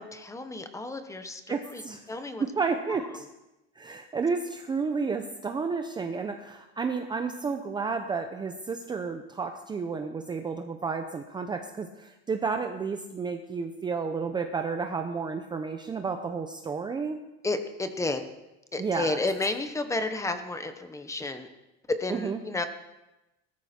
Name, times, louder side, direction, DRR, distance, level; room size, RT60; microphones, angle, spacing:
voice 1, 0.0-1.8 2.1-2.4 2.9-3.0 17.4-18.3 18.7-21.5 21.9-22.6, left 2 dB, 10° left, 8 dB, 1.0 m, -31 dB
voice 2, 1.5-2.0 2.4-3.3 3.8-17.2 18.8-19.2 22.1-22.4, right 5 dB, 15° right, 6 dB, 0.6 m, -31 dB
19.0 x 13.0 x 4.4 m, 0.98 s
cardioid pair, 160°, 30 cm